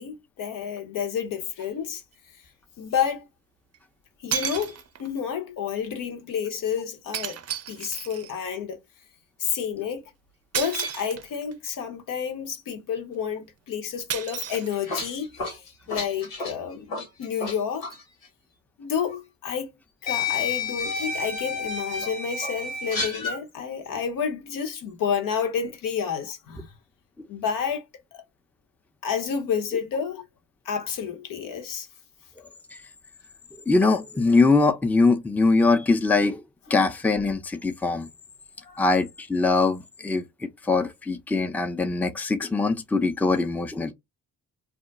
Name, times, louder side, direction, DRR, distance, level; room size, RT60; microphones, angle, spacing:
voice 1, 0.0-2.0 2.8-3.2 4.2-7.4 7.7-8.8 9.4-10.0 10.5-15.3 15.9-17.9 18.8-19.7 20.0-26.7 27.3-27.8 29.0-30.2 30.6-31.9 38.6-38.8, left 7 dB, 65° left, 0.8 m, -30 dB
sound 1, 1.6-1.7 3.7-3.8 4.3-5.2 7.1-8.4 10.5-11.5 14.1-15.2, right 8 dB, 45° right, 0.5 m, -32 dB
sound 2, 14.5-17.6 17.8-18.0 19.1-19.2 20.1-23.4, left 4 dB, 85° left, 1.2 m, -30 dB
voice 2, 33.7-36.4 36.7-38.1 38.8-43.9, left 3 dB, 5° left, 0.5 m, -22 dB
2.3 x 2.1 x 3.9 m
hypercardioid pair, 50°, 35 cm